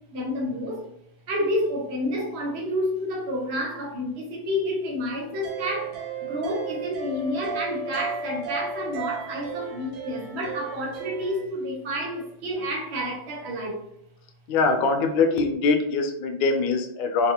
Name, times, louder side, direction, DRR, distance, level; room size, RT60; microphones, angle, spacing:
voice 1, 0.1-0.8 1.3-13.8, equal, 70° right, -2 dB, 0.6 m, -29 dB
sound 1, 5.3-11.4, right 5 dB, 90° right, 1.7 m, -34 dB
voice 2, 14.5-17.3, left 4 dB, 70° left, 4 dB, 1.0 m, -23 dB
4.0 x 2.4 x 2.7 m, 0.82 s
omnidirectional pair, 2.3 m